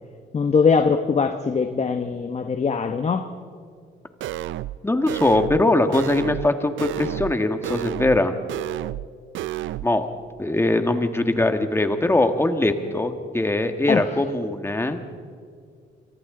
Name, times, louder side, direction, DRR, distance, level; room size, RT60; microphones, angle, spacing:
voice 1, 0.3-3.2 13.9-14.1, left 5 dB, 35° left, 7 dB, 1.0 m, -21 dB
sound 1, 4.2-4.8 5.1-5.6 5.9-6.5 6.8-7.4 7.6-8.2 8.5-9.1 9.3-9.9, right 14 dB, 75° right, 0.5 m, -30 dB
voice 2, 4.8-8.3 9.8-10.1 10.4-15.0, left 2 dB, 10° left, 7 dB, 1.7 m, -21 dB
28.0 x 24.0 x 3.9 m, 2.1 s
cardioid pair, 90°, 20 cm